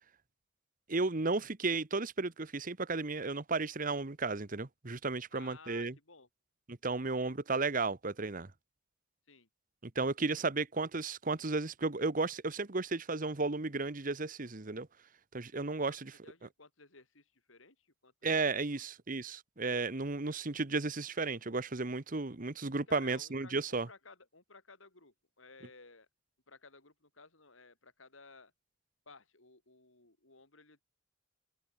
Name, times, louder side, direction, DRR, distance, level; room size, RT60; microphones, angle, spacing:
voice 1, 0.9-5.9 6.7-8.5 9.8-14.9 15.3-16.1 18.2-23.9, right 3 dB, 45° right, 1.2 m, -34 dB
voice 2, 5.3-6.3 9.3-9.5 15.8-16.0 16.2-18.3 22.9-26.1 26.5-28.5 29.1-30.8, left 3 dB, 80° left, 5.4 m, -57 dB
open air
head